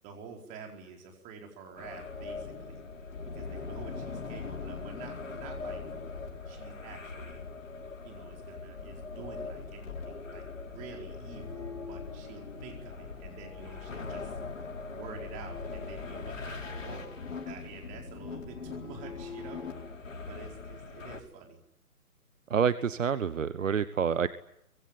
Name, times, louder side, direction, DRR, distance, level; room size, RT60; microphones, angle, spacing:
voice 1, 0.0-2.8 3.3-5.8 6.4-7.5 8.0-17.2 17.4-21.6, right 5 dB, 15° right, 2 dB, 4.6 m, -48 dB
sound 1, 1.8-21.2, left 4 dB, 55° left, 7.0 m, -41 dB
sound 2, 11.1-20.1, left 5 dB, 5° left, 2.7 m, -49 dB
voice 2, 22.5-24.3, right 7 dB, 55° right, 14 dB, 1.2 m, -27 dB
24.5 x 24.5 x 9.4 m, 0.77 s
figure-of-eight pair, 150°, 45 cm